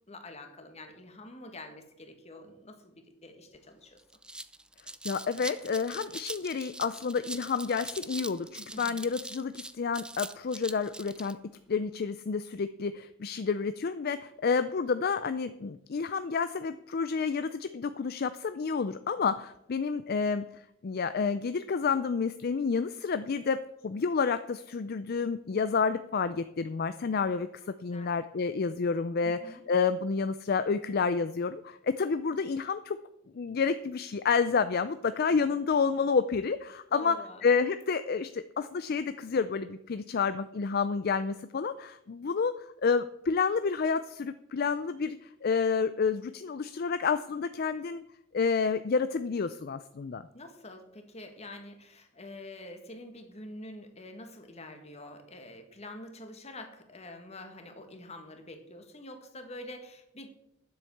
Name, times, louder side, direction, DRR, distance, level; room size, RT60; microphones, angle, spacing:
voice 1, 0.1-4.0 8.7-9.0 27.2-27.3 27.9-28.2 29.2-29.6 36.9-37.4 50.3-60.3, left 1 dB, 35° left, 6 dB, 1.7 m, -46 dB
sound 1, 3.5-3.6 4.0-11.3, right 2 dB, 5° right, 0.5 m, -42 dB
voice 2, 5.0-11.4 11.7-20.5 20.8-27.5 27.8-33.0 33.3-37.2 37.4-48.0 48.3-50.2, left 5 dB, 50° left, 12 dB, 0.4 m, -29 dB
10.0 x 7.9 x 7.1 m, 0.81 s
head